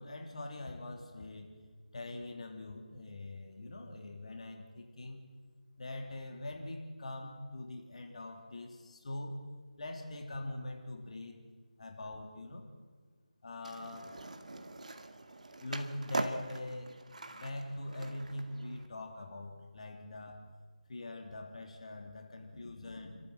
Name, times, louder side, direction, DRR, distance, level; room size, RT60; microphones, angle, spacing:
voice 1, 0.0-1.5 1.9-5.3 5.8-9.4 9.8-11.4 11.8-12.7 13.4-14.1 15.6-17.0 17.3-20.5 20.9-23.2, left 1 dB, 50° left, 3 dB, 3.1 m, -43 dB
Skateboard, 13.6-18.9, right 2 dB, 60° right, 2.1 m, -42 dB
30.0 x 13.5 x 8.0 m, 1.5 s
figure-of-eight pair, 160°, 4 cm